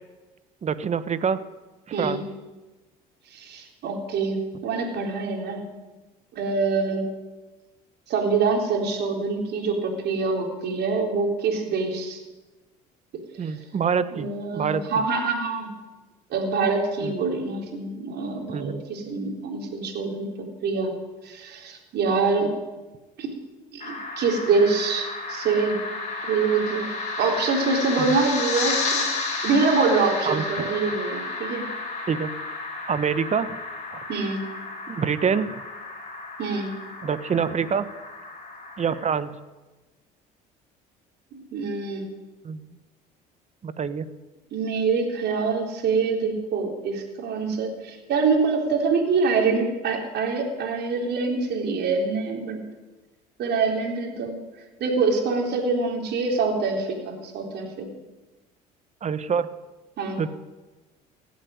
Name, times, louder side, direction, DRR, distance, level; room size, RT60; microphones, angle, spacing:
voice 1, 0.6-1.4 1.9-2.2 13.4-14.8 17.0-17.2 18.5-18.8 28.0-28.2 30.2-30.7 32.1-32.3 32.9-33.5 33.9-34.0 34.9-35.5 37.0-37.9 38.8-39.3 42.4-42.6 43.6-44.1 59.0-59.5 60.2-60.3, right 6 dB, 35° right, 14 dB, 1.2 m, -26 dB
voice 2, 3.3-4.4 4.6-5.6 6.4-7.0 8.1-12.2 13.4-13.6 14.1-15.7 16.3-20.9 21.2-22.6 23.2-23.4 23.7-25.8 26.2-26.9 27.2-29.1 29.4-31.7 34.1-34.4 36.4-36.7 41.3-42.0 44.5-52.6 53.4-54.4 54.8-57.9 60.0-60.2, right 4 dB, 60° right, 1 dB, 4.0 m, -25 dB
sound 1, 23.8-39.1, left 3 dB, 40° left, 4.6 m, -32 dB
16.5 x 8.5 x 9.7 m, 1.2 s
supercardioid pair, 80°, 19 cm